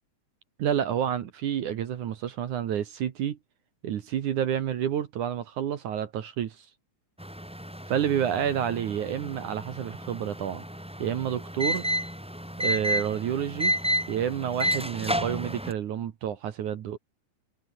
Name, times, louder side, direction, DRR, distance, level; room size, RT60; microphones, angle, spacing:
voice 1, 0.6-3.4 3.8-6.7 7.9-10.6 11.0-11.8 12.6-13.7 14.1-17.0, right 9 dB, 60° right, 2.2 m, -29 dB
sound 1, 7.2-15.7, equal, 5° right, 1.2 m, -31 dB
omnidirectional pair, 5.2 m